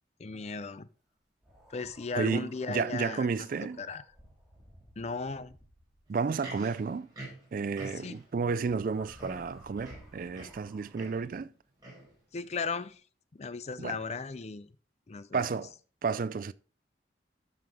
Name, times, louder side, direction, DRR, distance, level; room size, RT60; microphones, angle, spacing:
voice 1, 0.2-0.9 1.7-3.5 3.8-4.0 5.0-5.6 7.9-8.2 12.3-13.0 13.3-14.7 15.1-15.5, left 4 dB, 40° left, 0.5 m, -36 dB
sound 1, 1.4-6.2 8.5-11.3, equal, ahead, 2.1 m, -57 dB
voice 2, 2.1-3.8 6.1-7.1 7.5-11.5 13.8-14.0 15.3-15.7 16.0-16.5, right 5 dB, 50° right, 0.3 m, -32 dB
Livestock farm animals working animals, 6.1-8.3 8.9-9.0 9.2-10.7 10.9-11.3 11.8-12.1 12.8-12.9, right 1 dB, 20° right, 4.8 m, -47 dB
12.5 x 5.7 x 3.6 m
head